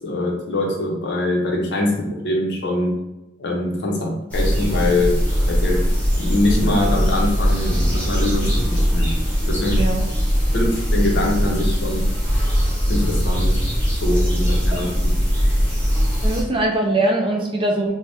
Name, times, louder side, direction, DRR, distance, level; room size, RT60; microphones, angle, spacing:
voice 1, 0.0-3.0 3.4-5.2 5.5-5.8 6.2-9.2 9.4-9.8 10.5-12.1 12.9-13.6 14.0-15.2, left 1 dB, 55° left, -1 dB, 0.6 m, -23 dB
sound 1, 4.3-16.4, equal, 5° left, 0.7 m, -20 dB
voice 2, 16.2-17.9, right 1 dB, 25° right, 1 dB, 0.3 m, -21 dB
2.6 x 2.1 x 3.3 m, 0.95 s
head